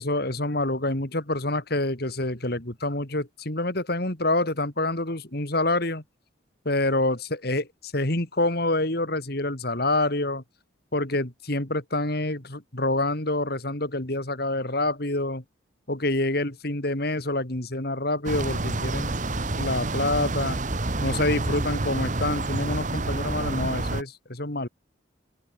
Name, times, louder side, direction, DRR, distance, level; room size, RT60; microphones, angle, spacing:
voice 1, 0.0-6.0 6.6-10.4 10.9-15.4 15.9-19.1 19.5-20.6 21.0-24.7, left 2 dB, 50° left, 2.8 m, -27 dB
sound 1, 18.2-24.0, right 2 dB, 40° right, 1.3 m, -28 dB
open air
head